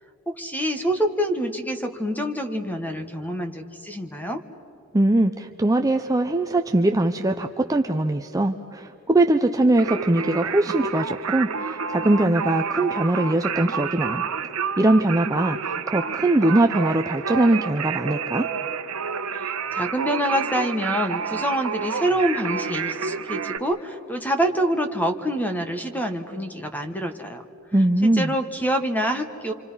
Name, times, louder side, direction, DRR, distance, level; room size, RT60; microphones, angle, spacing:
voice 1, 0.3-4.4 19.3-27.4 28.0-29.5, equal, 10° left, 7 dB, 1.3 m, -26 dB
voice 2, 4.9-14.2 14.8-18.5 27.7-28.3, right 1 dB, 15° right, 5 dB, 0.6 m, -21 dB
Singing, 9.8-23.6, right 6 dB, 80° right, 1.1 m, -29 dB
28.0 x 26.5 x 5.6 m, 2.9 s
head